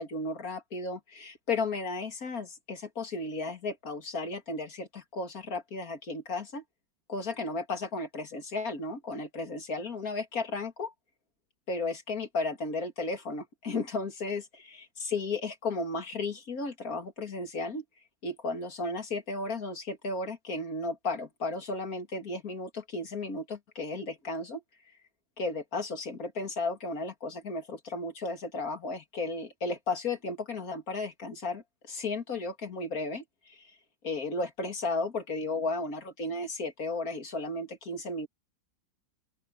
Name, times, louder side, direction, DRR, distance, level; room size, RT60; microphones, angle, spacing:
voice 1, 0.0-6.6 7.1-10.9 11.7-17.8 18.2-24.6 25.4-33.8 34.0-38.3, left 3 dB, 45° left, 3.1 m, -34 dB
open air
omnidirectional pair, 2.1 m